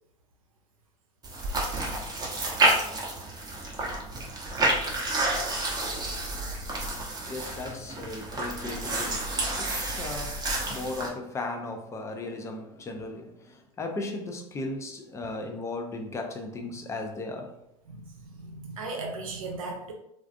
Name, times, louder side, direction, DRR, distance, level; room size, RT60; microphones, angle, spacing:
sound 1, 1.2-11.1, right 2 dB, 25° right, 0.7 m, -29 dB
voice 1, 7.3-10.4 10.7-13.3 13.8-17.5, left 2 dB, 15° left, 5 dB, 0.4 m, -36 dB
voice 2, 17.9-19.9, right 3 dB, 80° right, 1 dB, 0.6 m, -37 dB
2.4 x 2.4 x 2.4 m, 0.82 s
hypercardioid pair, 80°, 17 cm